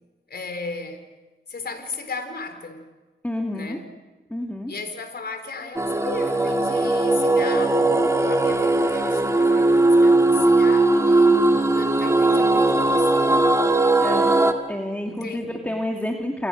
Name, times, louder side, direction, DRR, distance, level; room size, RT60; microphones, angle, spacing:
voice 1, 0.3-1.0 1.5-2.8 3.5-3.8 4.7-13.1 15.0-15.7, left 4 dB, 55° left, 8 dB, 4.3 m, -36 dB
voice 2, 3.2-3.8 4.3-4.7 14.0-14.3 14.7-16.5, left 1 dB, 10° left, 2 dB, 2.4 m, -29 dB
sound 1, 5.8-14.5, right 2 dB, 15° right, 2.6 m, -19 dB
28.5 x 22.0 x 6.5 m, 1.2 s
cardioid pair, 65°, 20 cm